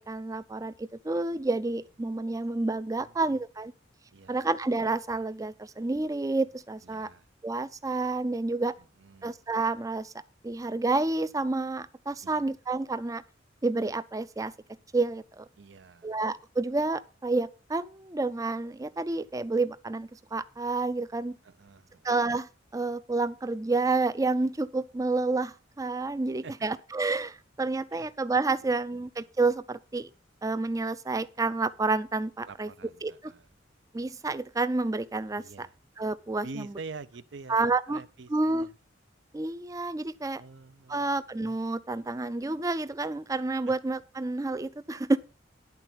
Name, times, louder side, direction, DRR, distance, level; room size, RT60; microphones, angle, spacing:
voice 1, 0.0-3.7 4.3-7.1 7.4-8.7 9.2-10.1 10.4-13.2 13.6-14.5 14.9-15.5 16.0-21.4 22.0-30.1 30.4-32.7 33.0-33.3 33.9-35.7 36.0-36.7 37.5-38.0 38.3-38.7 39.3-40.4 40.9-45.2, right 3 dB, 15° right, 0.4 m, -29 dB
voice 2, 4.1-4.4 6.8-7.2 9.0-9.3 12.2-12.5 15.6-16.2 21.4-22.1 26.4-26.5 27.9-28.1 28.6-28.7 32.5-33.5 35.4-35.7 36.4-38.7 40.4-41.2, right 4 dB, 65° right, 0.7 m, -46 dB
10.5 x 4.3 x 7.8 m
head